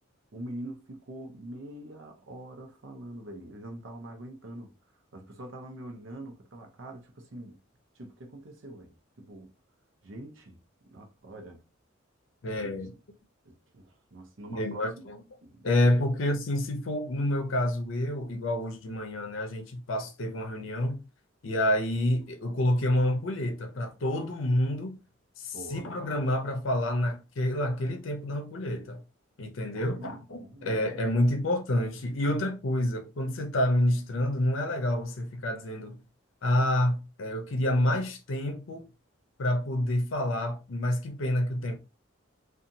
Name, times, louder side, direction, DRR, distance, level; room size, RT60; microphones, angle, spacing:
voice 1, 0.3-7.6 7.9-9.5 10.0-10.6 10.9-11.6 12.5-12.9 13.4-15.0 15.4-16.1 25.5-25.9 29.7-30.7, right 1 dB, 70° right, 0.6 m, -44 dB
voice 2, 12.4-12.9 14.5-15.2 15.6-21.0 21.4-25.0 25.4-29.0 29.4-36.0 36.4-38.9 39.4-41.8, left 1 dB, 70° left, 0.6 m, -28 dB
2.7 x 2.4 x 2.6 m
head